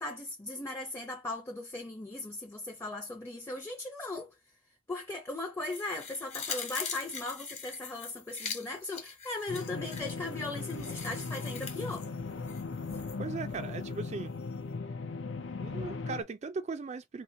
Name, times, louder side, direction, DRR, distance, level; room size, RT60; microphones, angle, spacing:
voice 1, 0.0-4.4 4.9-12.1, left 2 dB, 15° left, 0.6 m, -38 dB
sound 1, 5.7-13.2 13.5-13.6, left 6 dB, 35° left, 1.1 m, -42 dB
sound 2, 9.5-16.2, left 4 dB, 75° left, 0.6 m, -38 dB
voice 2, 13.2-14.3 15.6-17.2, right 4 dB, 35° right, 0.3 m, -38 dB
2.9 x 2.8 x 3.8 m
head